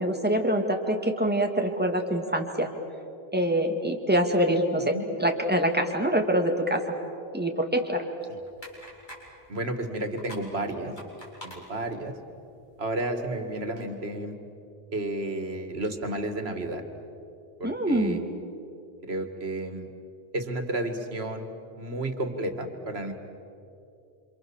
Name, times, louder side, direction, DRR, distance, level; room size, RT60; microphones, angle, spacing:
voice 1, 0.0-2.7 3.3-6.8 7.3-8.1 17.6-18.2, right 1 dB, 10° right, 3 dB, 2.3 m, -25 dB
sound 1, 8.4-13.9, equal, 50° left, 5.6 m, -49 dB
voice 2, 9.5-11.0 11.4-12.1 12.8-14.4 14.9-16.8 17.6-18.2 19.0-19.9 20.3-23.1, right 1 dB, 80° right, 7 dB, 2.3 m, -32 dB
27.5 x 27.0 x 7.2 m, 2.7 s
omnidirectional pair, 1.1 m